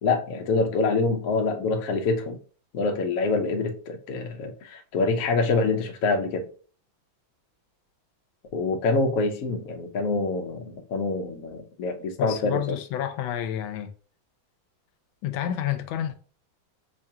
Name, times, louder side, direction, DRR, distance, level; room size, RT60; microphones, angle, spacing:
voice 1, 0.0-2.4 2.7-6.4 8.5-12.6, left 3 dB, 65° left, 0.9 m, -26 dB
voice 2, 12.2-13.9 15.2-16.1, left 11 dB, 85° left, 1.4 m, -29 dB
4.9 x 2.4 x 2.7 m
omnidirectional pair, 2.1 m